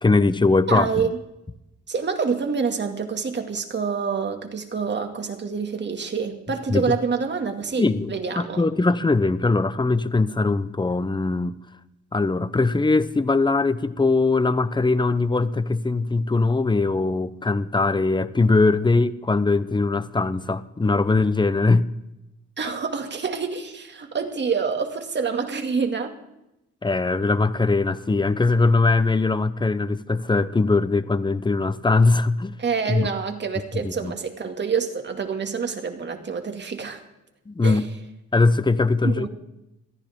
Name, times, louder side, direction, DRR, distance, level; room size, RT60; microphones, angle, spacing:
voice 1, 0.0-0.9 6.7-7.0 7.8-11.6 12.1-21.9 22.6-22.7 26.8-32.5 32.9-33.1 33.7-34.1 37.5-37.8 38.3-39.3, left 3 dB, 15° left, 15 dB, 0.9 m, -21 dB
voice 2, 0.7-1.2 1.9-8.6 22.6-26.1 32.6-37.0 37.6-37.8 39.0-39.3, right 5 dB, 35° right, 5 dB, 2.4 m, -27 dB
22.0 x 14.5 x 3.8 m, 0.89 s
cardioid pair, 90°, 30 cm